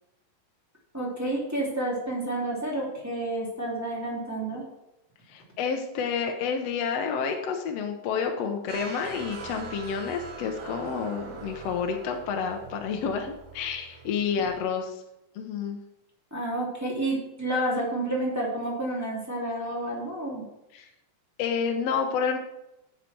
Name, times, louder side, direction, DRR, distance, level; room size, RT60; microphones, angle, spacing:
voice 1, 0.9-4.6 16.3-20.5, right 1 dB, 5° right, -5 dB, 2.7 m, -30 dB
voice 2, 5.3-15.0 15.4-15.8 20.7-20.9 21.4-22.4, left 6 dB, 65° left, 3 dB, 1.7 m, -29 dB
sound 1, 8.7-14.6, right 5 dB, 80° right, 2.9 m, -42 dB
12.5 x 7.6 x 4.5 m, 0.90 s
omnidirectional pair, 3.7 m